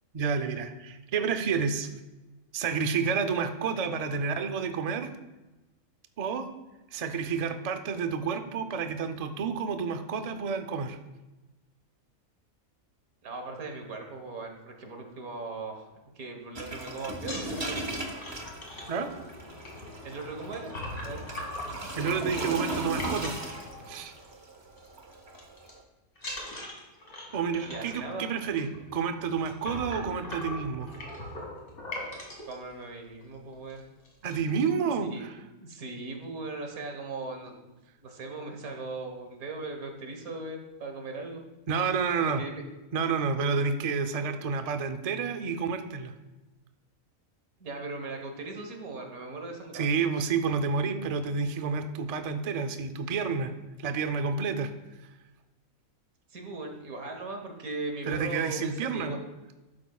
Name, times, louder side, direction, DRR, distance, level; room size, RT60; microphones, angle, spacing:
voice 1, 0.1-1.9 2.5-5.1 6.2-6.5 6.9-11.0 18.9-19.1 21.9-23.4 23.9-24.1 27.3-30.9 34.2-35.3 41.7-42.4 42.9-46.1 49.7-53.5 53.8-54.7 58.1-59.1, right 5 dB, 50° right, 8 dB, 0.4 m, -29 dB
voice 2, 13.2-15.9 16.2-17.8 20.0-20.8 21.0-21.2 27.6-28.2 32.5-33.8 35.0-35.2 35.6-37.7 38.0-41.4 42.4-42.6 47.6-49.8 56.3-59.2, right 3 dB, 80° right, 3 dB, 1.8 m, -38 dB
sound 1, 16.6-25.8, right 1 dB, 25° right, 0.8 m, -38 dB
sound 2, 17.2-24.3 24.6-24.9 25.1-25.7 26.2-32.5 33.2-33.3 33.6-33.8 34.0-34.6, left 1 dB, 60° left, 2.4 m, -40 dB
11.5 x 8.5 x 2.3 m, 1.1 s
omnidirectional pair, 1.5 m